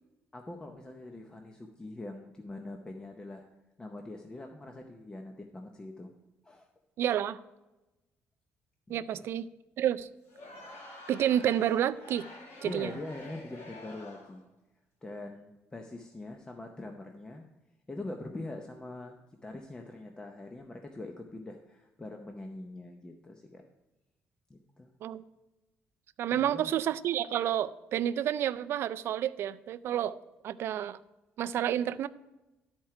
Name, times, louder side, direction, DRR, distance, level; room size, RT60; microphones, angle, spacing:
voice 1, 0.3-3.4 3.8-6.1 6.4-6.7 8.9-9.3 12.6-14.4 15.0-17.5 17.9-19.2 19.4-23.6 24.5-24.9 26.3-26.7, left 2 dB, 15° left, 3 dB, 0.7 m, -43 dB
voice 2, 7.0-7.4 8.9-9.5 9.8-10.1 11.1-12.3 12.6-12.9 25.0-25.2 26.2-30.2 30.4-31.0 31.4-32.1, right 10 dB, 65° right, 14 dB, 0.4 m, -29 dB
Crowd, 10.2-14.4, left 2 dB, 80° left, 2.1 m, -48 dB
12.5 x 4.4 x 4.7 m, 1.0 s
cardioid pair, 115°, 5 cm